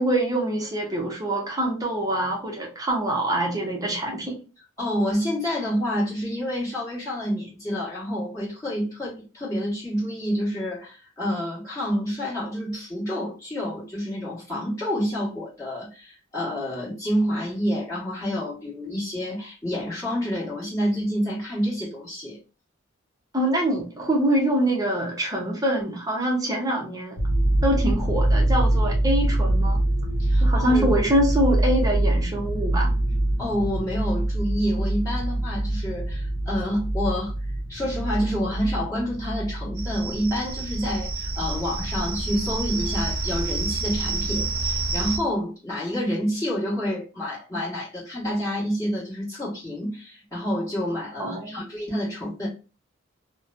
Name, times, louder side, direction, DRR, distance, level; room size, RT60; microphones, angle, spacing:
voice 1, 0.0-4.4 23.3-27.2 27.6-29.8 30.4-32.9 51.2-51.5, right 1 dB, 15° right, 0.7 m, -24 dB
voice 2, 4.8-22.4 30.2-31.0 33.4-37.3 37.7-52.5, equal, 15° left, 1.4 m, -28 dB
sound 1, 27.2-44.2 44.5-44.8, right 1 dB, 60° left, 0.7 m, -25 dB
sound 2, 39.8-45.2, right 3 dB, 85° right, 0.6 m, -29 dB
2.9 x 2.1 x 2.5 m
head